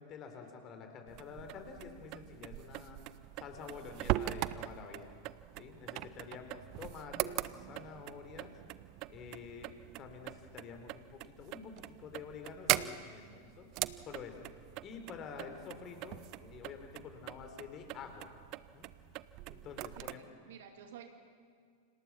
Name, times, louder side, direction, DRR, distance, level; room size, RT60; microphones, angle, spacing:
voice 1, 0.0-3.0 3.4-5.1 5.6-8.6 9.1-9.7 10.0-13.7 14.0-14.4 14.8-18.3 18.7-18.9 19.5-20.3, left 6 dB, 30° left, 5 dB, 4.1 m, -48 dB
sound 1, 1.1-20.1, right 17 dB, 40° right, 0.6 m, -41 dB
voice 2, 19.7-21.1, right 8 dB, 55° right, 5 dB, 2.6 m, -52 dB
30.0 x 26.5 x 5.9 m, 2.2 s
figure-of-eight pair, 90°, 0 cm